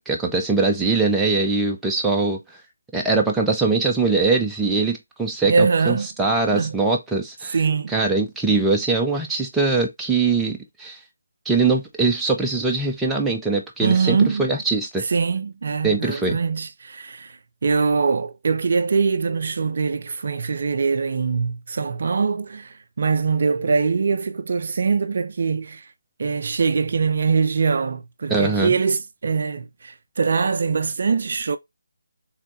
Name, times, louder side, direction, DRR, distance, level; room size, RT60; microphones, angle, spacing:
voice 1, 0.1-2.4 2.9-7.6 7.9-11.0 11.5-15.0 15.8-16.4 28.3-28.7, right 3 dB, 5° right, 0.7 m, -22 dB
voice 2, 5.4-6.1 6.5-6.7 7.5-7.9 13.8-14.5 15.0-17.4 17.6-25.8 26.2-31.6, right 5 dB, 50° right, 0.5 m, -22 dB
4.4 x 3.5 x 3.0 m
figure-of-eight pair, 150°, 0 cm